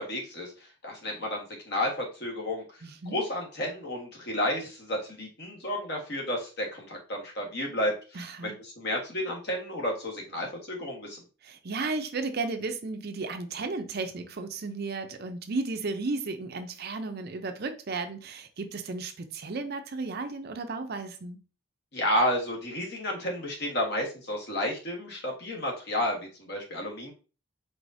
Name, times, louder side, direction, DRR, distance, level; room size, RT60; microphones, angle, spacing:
voice 1, 0.0-2.6 3.0-7.9 8.4-11.2 21.9-27.1, left 1 dB, 50° left, 1.4 m, -31 dB
voice 2, 2.8-3.2 8.1-8.6 11.4-21.4, right 3 dB, 50° right, 0.5 m, -34 dB
4.8 x 3.8 x 2.6 m
head